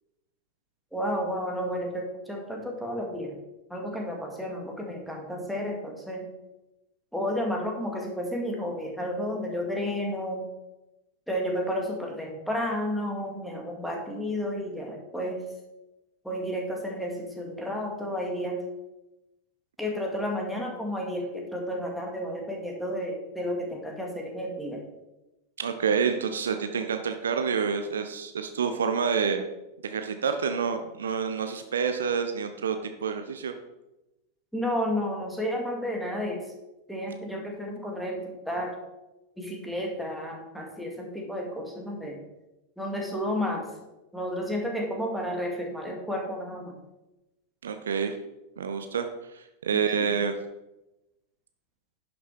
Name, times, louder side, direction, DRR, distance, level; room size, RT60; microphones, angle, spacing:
voice 1, 0.9-3.3 3.7-6.3 7.1-10.5 11.3-15.4 16.2-18.6 19.8-24.8 34.5-36.4 36.9-38.8 39.4-42.2 42.8-43.6 44.1-46.8 50.0-50.2, equal, ahead, -1 dB, 2.3 m, -32 dB
voice 2, 25.6-29.4 29.8-33.5 47.6-48.2 48.6-49.0 49.3-50.4, right 6 dB, 65° right, 7 dB, 0.7 m, -28 dB
10.5 x 6.4 x 4.5 m, 0.97 s
figure-of-eight pair, 90°, 0 cm